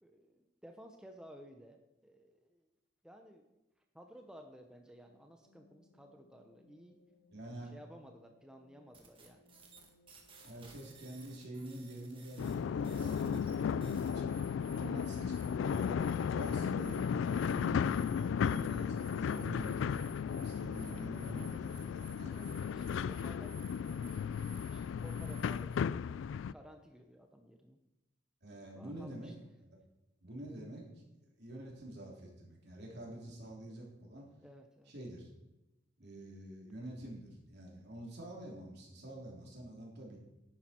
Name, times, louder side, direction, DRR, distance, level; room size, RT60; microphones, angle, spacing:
voice 1, 0.0-2.7 3.0-3.4 3.9-7.0 7.7-9.5 14.8-15.0 22.3-27.8 28.8-29.3 34.4-34.9, equal, 5° right, 4 dB, 0.7 m, -56 dB
sound 1, 4.9-24.1, left 2 dB, 90° left, 2.1 m, -68 dB
voice 2, 7.3-7.7 10.4-20.0 20.4-22.5 28.4-29.3 30.2-31.0 31.4-34.3 34.9-35.3 36.0-40.2, right 1 dB, 60° right, -1 dB, 3.3 m, -47 dB
sound 2, 8.9-25.8, right 2 dB, 30° right, 1.8 m, -57 dB
sound 3, 12.4-26.5, left 7 dB, 75° left, 0.3 m, -35 dB
10.5 x 9.6 x 4.4 m, 0.94 s
head